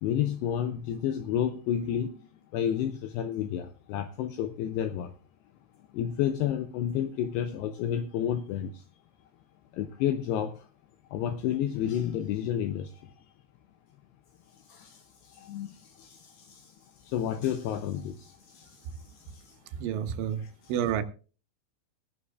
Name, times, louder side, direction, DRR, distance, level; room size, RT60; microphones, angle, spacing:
voice 1, 0.0-2.2 2.5-5.2 5.9-8.8 9.7-10.7 11.1-13.1 14.5-19.6 20.4-20.5, left 10 dB, 85° left, 2.4 m, -31 dB
voice 2, 19.8-20.4 20.7-21.0, right 9 dB, 80° right, 3.3 m, -29 dB
20.0 x 11.0 x 2.3 m
omnidirectional pair, 5.5 m